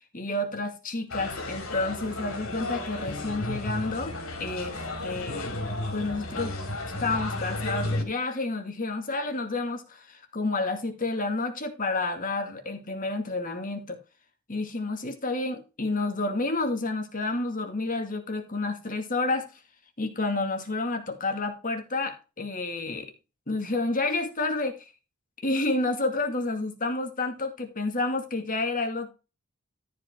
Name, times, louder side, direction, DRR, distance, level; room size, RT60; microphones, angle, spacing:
voice 1, 0.1-4.8 5.0-5.6 5.9-6.5 7.0-14.0 14.5-19.5 20.0-23.1 23.5-24.8 25.4-29.1, left 2 dB, 40° left, 2.2 m, -30 dB
sound 1, 1.1-8.0, left 2 dB, 70° left, 2.7 m, -33 dB
13.5 x 5.0 x 4.6 m
head